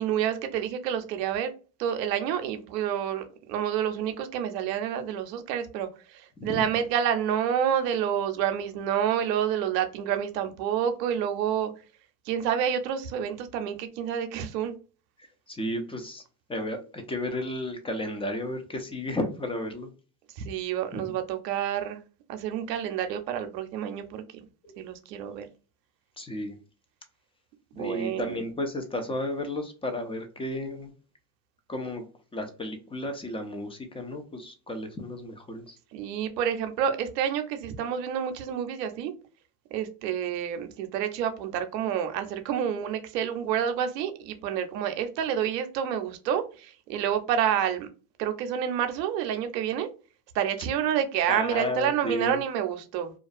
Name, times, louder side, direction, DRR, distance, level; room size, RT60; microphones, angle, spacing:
voice 1, 0.0-1.5 1.8-11.7 12.3-14.8 20.4-22.0 22.3-24.2 24.8-25.5 27.8-28.4 35.9-39.1 39.7-47.9 48.2-49.9 50.3-53.1, right 9 dB, 85° right, 8 dB, 0.7 m, -28 dB
voice 2, 15.5-16.2 16.5-19.9 21.0-21.1 24.6-24.9 26.2-26.6 27.7-30.9 31.7-32.1 32.3-35.8 51.3-52.4, left 1 dB, 10° left, 6 dB, 0.4 m, -33 dB
2.5 x 2.3 x 2.4 m, 0.35 s
supercardioid pair, 90°, 49 cm